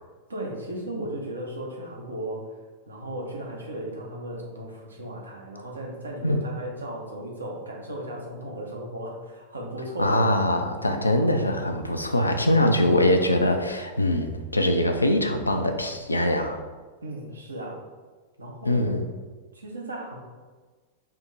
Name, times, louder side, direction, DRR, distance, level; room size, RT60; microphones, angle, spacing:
voice 1, 0.3-2.5 2.9-10.2 17.0-17.8 18.4-19.0 19.5-20.2, right 1 dB, 75° right, 0 dB, 0.9 m, -35 dB
voice 2, 10.0-16.6 18.6-19.0, left 1 dB, 80° left, 5 dB, 0.4 m, -23 dB
4.6 x 2.8 x 4.0 m, 1.4 s
figure-of-eight pair, 90°, 0 cm